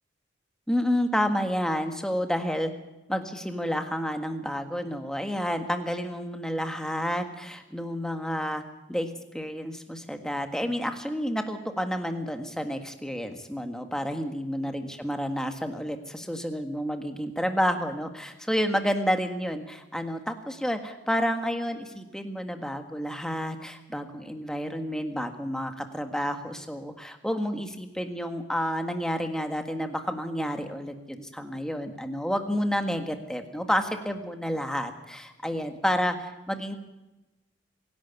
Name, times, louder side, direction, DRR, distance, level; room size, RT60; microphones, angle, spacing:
voice 1, 0.7-2.7 3.1-8.6 8.9-36.7, equal, 5° left, 5 dB, 1.7 m, -30 dB
24.5 x 11.5 x 9.5 m, 1.0 s
head